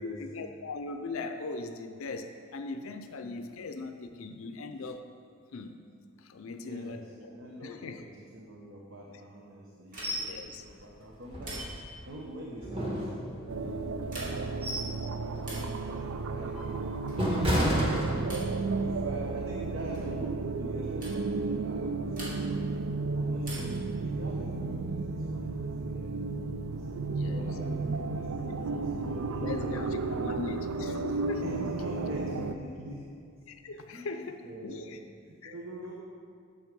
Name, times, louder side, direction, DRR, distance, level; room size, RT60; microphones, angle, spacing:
voice 1, 0.0-5.1 5.5-5.7 6.2-7.4 7.6-8.0 10.3-10.6 27.1-27.4 29.3-31.4 33.5-34.4 34.6-35.0 35.4-35.5, left 3 dB, 75° left, 7 dB, 0.5 m, -39 dB
voice 2, 6.6-11.7 12.1-16.8 17.2-18.3 18.7-22.7 23.1-26.9 27.3-30.2 31.4-33.0 33.9-35.9, right 1 dB, 65° right, -2 dB, 1.1 m, -44 dB
sound 1, 9.9-10.4 11.4-12.0 14.0-14.6 15.4-15.8 17.0-17.4 18.3-18.6 19.9-20.2 21.0-21.2 22.1-22.7 23.4-23.9 25.4-26.0, right 1 dB, 40° right, 2.7 m, -44 dB
sound 2, 10.0-10.3 10.7-10.8 11.3-12.1 12.6-13.6 14.2-15.0 15.4-15.7 16.2-18.7 19.0-19.2, equal, 25° right, 1.6 m, -31 dB
sound 3, 13.5-32.5, right 3 dB, 80° right, 0.5 m, -33 dB
9.2 x 7.1 x 5.3 m, 2.3 s
head